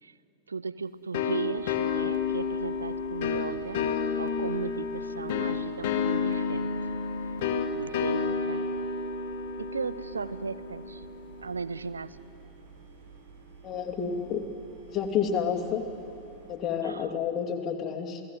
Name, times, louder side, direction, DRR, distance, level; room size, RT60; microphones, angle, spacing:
voice 1, 0.5-3.9 4.2-6.7 7.7-8.7 9.6-11.0 11.4-12.2 16.8-17.1, right 4 dB, 75° right, 14 dB, 0.8 m, -36 dB
sound 1, 1.1-11.6, left 5 dB, 50° left, 1.9 m, -30 dB
sound 2, 1.6-16.6, right 5 dB, 55° right, 6.8 m, -51 dB
voice 2, 13.6-14.4 14.9-15.8 16.5-18.2, left 7 dB, 30° left, 2 dB, 2.7 m, -29 dB
29.0 x 17.5 x 9.6 m, 2.7 s
figure-of-eight pair, 90°, 0 cm